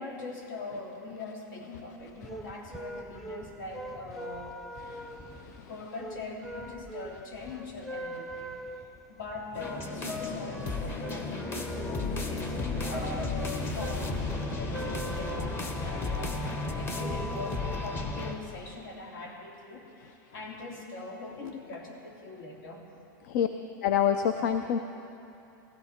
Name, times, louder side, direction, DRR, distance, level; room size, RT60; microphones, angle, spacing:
voice 1, 0.0-5.0 5.5-8.6 9.1-14.2 14.6-22.9, left 3 dB, 75° left, 0 dB, 2.7 m, -42 dB
sound 1, 2.0-16.0, equal, ahead, 0.5 m, -43 dB
sound 2, 9.6-18.3, left 2 dB, 20° left, 1.1 m, -33 dB
voice 2, 23.8-24.8, left 9 dB, 60° left, 8 dB, 0.6 m, -25 dB
17.0 x 14.5 x 4.4 m, 2.8 s
supercardioid pair, 155°, 11 cm